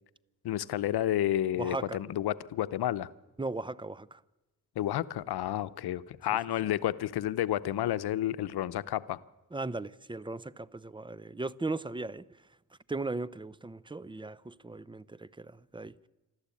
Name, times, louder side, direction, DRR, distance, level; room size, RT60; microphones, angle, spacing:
voice 1, 0.4-3.1 4.8-9.2, left 12 dB, 85° left, 0.8 m, -31 dB
voice 2, 1.5-2.0 3.4-4.2 9.5-12.4 12.9-16.1, right 3 dB, 15° right, 0.7 m, -37 dB
27.5 x 13.0 x 8.5 m
cardioid pair, 75°, 37 cm